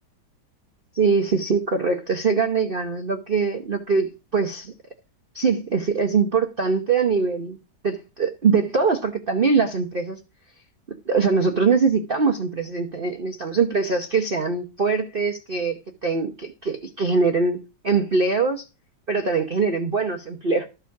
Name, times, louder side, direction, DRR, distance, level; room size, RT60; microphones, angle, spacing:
voice 1, 0.9-4.7 5.3-7.6 7.8-10.2 11.1-17.6 17.8-18.6 19.1-20.7, right 4 dB, 35° right, 1.1 m, -22 dB
13.5 x 5.0 x 5.9 m
omnidirectional pair, 2.0 m